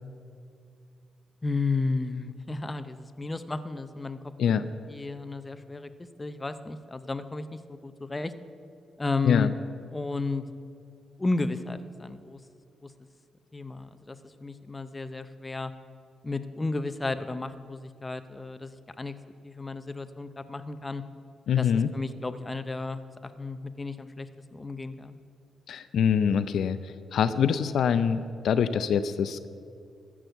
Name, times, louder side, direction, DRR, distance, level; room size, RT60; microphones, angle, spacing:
voice 1, 1.4-4.2 4.5-4.6 4.9-5.9 6.2-8.3 9.0-9.5 9.9-10.4 11.2-12.4 12.8-12.9 13.5-15.7 16.2-21.0 21.6-25.2, left 3 dB, 20° left, 11 dB, 0.6 m, -33 dB
voice 2, 21.5-21.9 25.7-29.5, left 7 dB, 70° left, 11 dB, 0.5 m, -25 dB
13.5 x 6.2 x 8.0 m, 2.4 s
cardioid pair, 95°, 0 cm